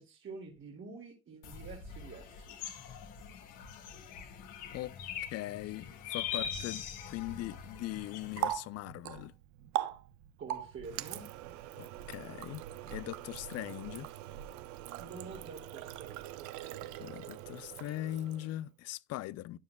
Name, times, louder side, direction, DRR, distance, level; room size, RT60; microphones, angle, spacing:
voice 1, 0.0-2.6 10.4-11.2 15.0-16.4, right 4 dB, 40° right, 2.1 m, -48 dB
sound 1, 1.4-8.5, left 8 dB, 80° left, 1.8 m, -42 dB
voice 2, 5.3-9.3 11.8-14.1 17.0-19.6, left 15 dB, 55° left, 0.5 m, -40 dB
Water tap faucet, 7.9-18.6, right 13 dB, 70° right, 0.8 m, -41 dB
12.0 x 9.7 x 2.2 m
hypercardioid pair, 70°, 30 cm